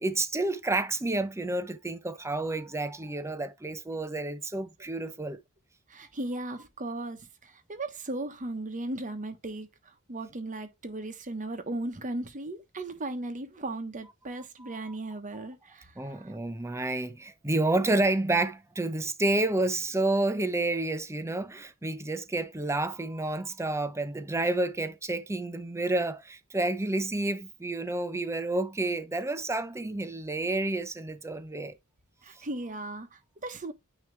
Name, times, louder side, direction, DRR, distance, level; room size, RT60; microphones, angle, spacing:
voice 1, 0.0-5.4 14.6-15.0 15.3-15.4 16.0-31.7, right 2 dB, 15° right, 0.7 m, -30 dB
voice 2, 5.9-16.4 32.2-33.7, right 2 dB, 35° right, 1.1 m, -37 dB
9.4 x 3.1 x 3.3 m
head